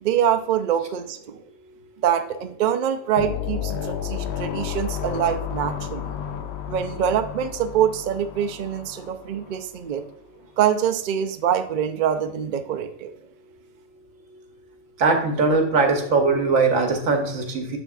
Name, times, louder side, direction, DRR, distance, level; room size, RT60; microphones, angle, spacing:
voice 1, 0.0-1.4 2.0-6.2 6.7-10.0 10.6-13.1, right 9 dB, 65° right, 8 dB, 0.5 m, -24 dB
sound 1, 3.2-9.6, left 9 dB, 65° left, 0.8 m, -32 dB
voice 2, 15.0-17.8, right 4 dB, 80° right, 4 dB, 1.4 m, -20 dB
6.8 x 6.4 x 2.4 m, 0.74 s
omnidirectional pair, 1.4 m